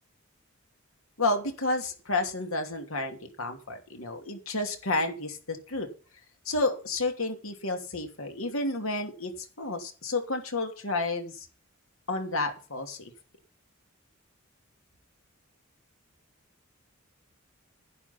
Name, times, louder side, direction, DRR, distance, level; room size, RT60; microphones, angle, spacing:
voice 1, 1.2-5.9 6.4-9.3 9.6-11.5 12.1-13.1, left 2 dB, 80° left, 5 dB, 2.9 m, -31 dB
11.0 x 10.5 x 5.9 m, 0.35 s
head